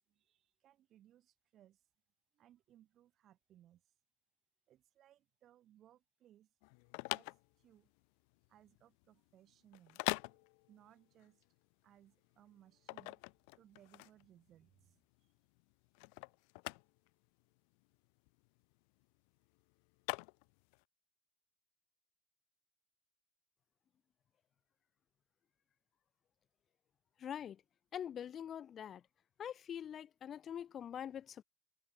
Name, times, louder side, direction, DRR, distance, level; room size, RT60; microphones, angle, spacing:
voice 1, 0.1-1.8 2.3-3.8 4.7-6.5 7.0-7.9 8.5-11.5 11.8-13.2 13.5-15.3, right 12 dB, 50° right, 3.5 m, -66 dB
sound 1, 6.6-20.8, left 40 dB or more, 85° left, 0.8 m, -45 dB
voice 2, 27.2-27.6 27.9-29.0 29.4-31.4, left 9 dB, 40° left, 0.4 m, -44 dB
cardioid pair, 120°, 0 cm